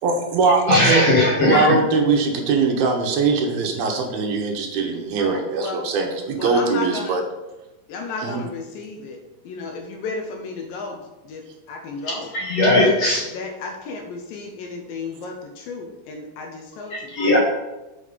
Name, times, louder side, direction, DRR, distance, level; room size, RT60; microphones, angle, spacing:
voice 1, 0.0-1.1 1.4-7.2 8.2-8.4, right 4 dB, 75° right, 2 dB, 2.9 m, -21 dB
voice 2, 0.7-1.6 12.3-13.2 16.9-17.4, left 2 dB, 55° left, -3 dB, 2.0 m, -18 dB
voice 3, 5.2-5.9 6.3-7.2 7.9-12.3 12.8-12.9 13.2-17.2, left 4 dB, 75° left, 3 dB, 2.3 m, -33 dB
8.3 x 5.2 x 5.1 m, 1.0 s
omnidirectional pair, 4.5 m